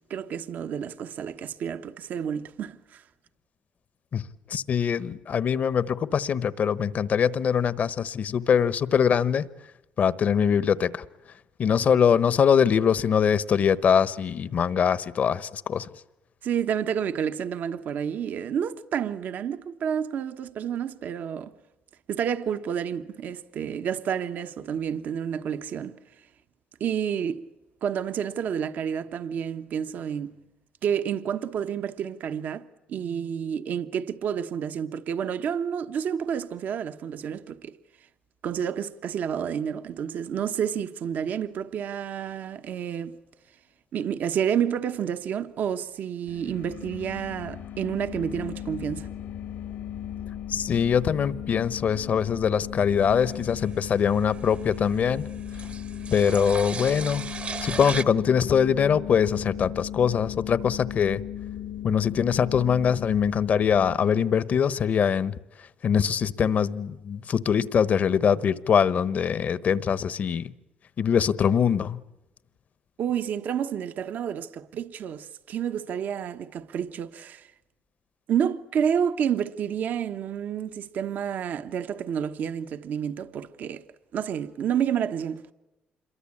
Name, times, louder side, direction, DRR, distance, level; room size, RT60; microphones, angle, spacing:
voice 1, 0.1-3.0 16.4-21.5 22.1-26.0 26.8-27.4 27.8-30.4 30.8-32.6 32.9-37.8 38.4-43.2 43.9-49.1 73.0-77.5 78.3-83.8 84.1-85.4, right 8 dB, 65° right, 1.2 m, -29 dB
voice 2, 4.5-9.5 10.0-11.0 11.6-15.9 50.5-55.3 56.1-57.2 57.6-61.2 61.8-65.3 65.8-70.5 71.0-72.0, left 7 dB, 55° left, 1.1 m, -23 dB
sound 1, 46.3-64.0, left 10 dB, 80° left, 2.0 m, -37 dB
sound 2, 53.0-58.0, right 5 dB, 45° right, 1.1 m, -37 dB
27.0 x 23.0 x 8.7 m
cardioid pair, 80°, 3 cm